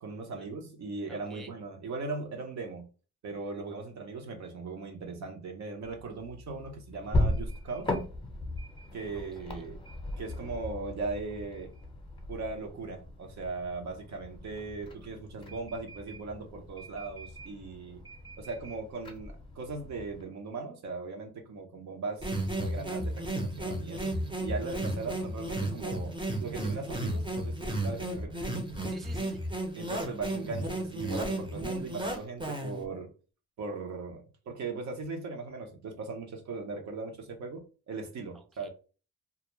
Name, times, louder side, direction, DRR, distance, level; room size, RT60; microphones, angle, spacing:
voice 1, 0.0-2.9 3.2-7.9 8.9-9.8 10.2-11.7 12.3-18.0 18.4-28.4 29.7-33.1 33.6-38.7, right 3 dB, 65° right, 0.8 m, -39 dB
voice 2, 1.1-1.5 9.5-9.7 28.9-29.4 38.3-38.7, right 2 dB, ahead, 0.3 m, -51 dB
sound 1, 5.8-20.2, left 1 dB, 15° left, 0.8 m, -38 dB
sound 2, 22.2-32.8, right 1 dB, 15° right, 0.7 m, -33 dB
2.3 x 2.1 x 3.1 m
cardioid pair, 90°, 30 cm